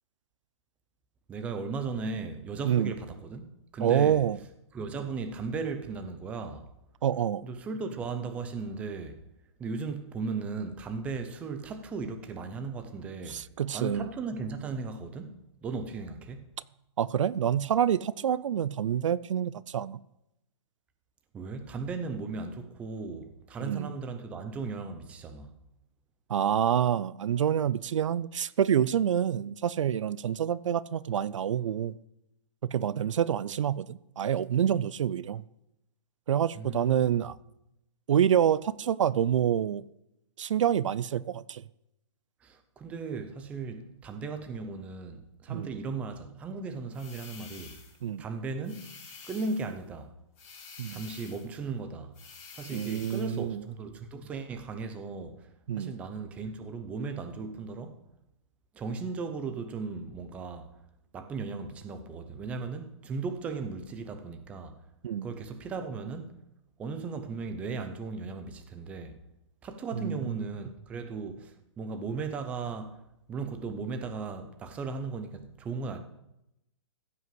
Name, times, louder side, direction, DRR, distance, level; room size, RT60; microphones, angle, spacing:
voice 1, 1.3-4.2 4.7-6.7 7.4-9.2 9.6-13.4 13.7-16.5 21.3-25.6 36.6-37.3 42.4-47.8 48.2-48.9 49.2-50.1 50.9-52.1 52.6-55.5 55.8-58.0 58.7-60.7 61.1-64.8 65.2-66.3 66.8-69.2 69.6-73.0 73.3-76.0, right 4 dB, 10° right, 0.6 m, -36 dB
voice 2, 2.6-2.9 3.8-4.4 7.0-7.4 13.3-14.1 17.0-20.0 23.6-23.9 26.3-31.9 32.6-35.4 36.3-37.4 38.1-39.8 40.4-41.6 45.5-45.7 48.0-48.3 50.8-51.0 52.7-53.7 55.7-55.9 65.0-65.3 69.9-70.5, right 9 dB, 75° right, 0.5 m, -27 dB
sound 1, 46.9-48.0 48.6-49.7 50.4-51.5 52.1-53.4, left 5 dB, 25° left, 3.1 m, -48 dB
15.0 x 5.7 x 7.6 m
hypercardioid pair, 170°, 16 cm